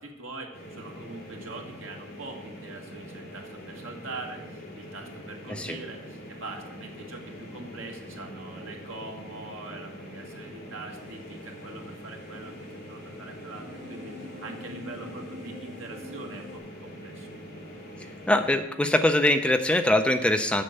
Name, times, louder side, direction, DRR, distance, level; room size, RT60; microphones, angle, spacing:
voice 1, 0.0-12.5 12.9-17.3, right 3 dB, 80° right, 2 dB, 1.7 m, -42 dB
sound 1, 0.5-18.6, equal, 50° left, 3.1 m, -43 dB
sound 2, 10.9-16.6, left 1 dB, 40° right, 3.2 m, -47 dB
voice 2, 18.3-20.6, left 1 dB, 5° left, 7 dB, 0.4 m, -23 dB
7.7 x 6.4 x 7.8 m, 0.97 s
head